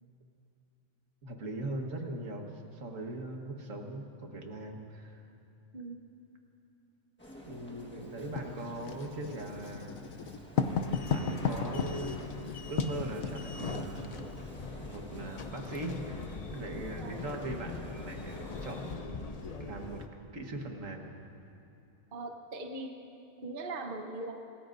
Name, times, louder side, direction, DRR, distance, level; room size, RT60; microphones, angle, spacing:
voice 1, 1.2-5.3 7.5-10.2 10.5-12.2 12.7-14.3 14.8-20.0 20.3-21.1, right 2 dB, 70° right, 2 dB, 1.8 m, -40 dB
sound 1, 7.2-19.0, left 1 dB, 10° left, 1.3 m, -50 dB
Writing, 8.4-14.3, left 6 dB, 85° left, 1.2 m, -34 dB
sound 2, 10.5-20.1, left 4 dB, 40° left, 0.6 m, -42 dB
voice 2, 22.1-22.9 23.4-24.3, right 2 dB, 45° right, 3 dB, 1.1 m, -40 dB
26.0 x 19.5 x 2.6 m, 2.8 s
omnidirectional pair, 1.4 m